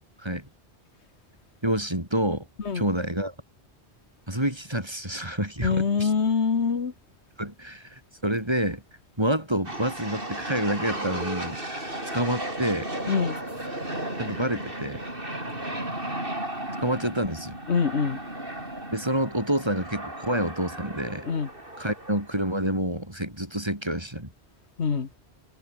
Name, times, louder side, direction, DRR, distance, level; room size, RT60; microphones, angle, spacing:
voice 1, 0.2-0.5 1.6-2.5 2.7-3.3 4.3-6.1 7.4-8.8 9.2-11.6 12.1-12.9 14.2-15.0 16.8-17.6 18.9-21.2 21.8-24.3, right 1 dB, 25° right, 4.9 m, -28 dB
voice 2, 5.6-6.9 13.1-13.4 17.7-18.2 21.3-21.5 24.8-25.1, left 5 dB, 85° left, 1.8 m, -24 dB
sound 1, 9.6-22.8, right 1 dB, 55° right, 7.7 m, -35 dB
omnidirectional pair, 1.1 m